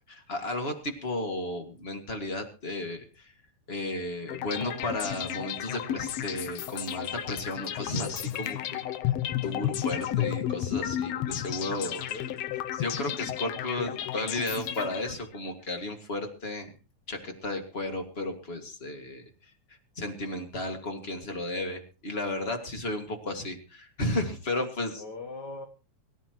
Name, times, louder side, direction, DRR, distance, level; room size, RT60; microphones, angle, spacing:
voice 1, 0.1-3.3 3.7-12.0 12.7-16.7 17.1-19.2 20.0-25.0, left 2 dB, 25° left, 5 dB, 1.8 m, -34 dB
sound 1, 4.3-15.4, left 12 dB, 70° left, 1.8 m, -33 dB
voice 2, 11.6-12.4 25.0-25.7, left 3 dB, 50° left, 5 dB, 1.3 m, -42 dB
23.0 x 13.0 x 3.0 m, 0.33 s
omnidirectional pair, 3.4 m